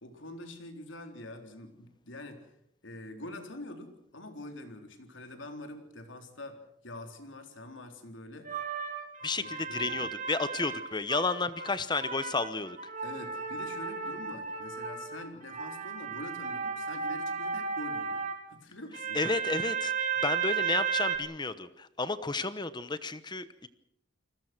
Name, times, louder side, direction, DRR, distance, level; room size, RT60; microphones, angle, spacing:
voice 1, 0.0-2.5 2.8-8.5 9.4-10.1 13.0-19.2, left 1 dB, 75° left, 6 dB, 3.9 m, -45 dB
sound 1, 8.4-11.7 12.0-18.4 18.9-21.2, right 6 dB, 40° right, 3.2 m, -34 dB
voice 2, 9.2-12.9 19.1-19.9 20.2-23.7, left 3 dB, 25° left, 13 dB, 1.0 m, -32 dB
29.0 x 20.5 x 6.1 m, 0.75 s
head